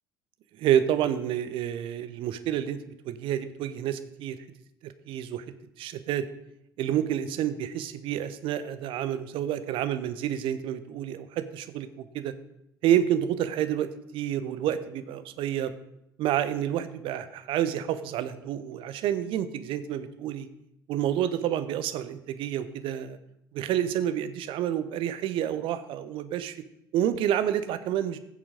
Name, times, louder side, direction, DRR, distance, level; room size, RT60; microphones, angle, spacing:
voice 1, 0.6-2.8 3.0-4.4 4.8-5.4 5.8-6.3 6.8-12.3 12.8-15.7 16.2-20.5 20.9-23.2 23.5-26.6 26.9-28.2, right 10 dB, 50° right, 11 dB, 1.0 m, -29 dB
15.5 x 7.1 x 5.1 m, 0.78 s
figure-of-eight pair, 55°, 11 cm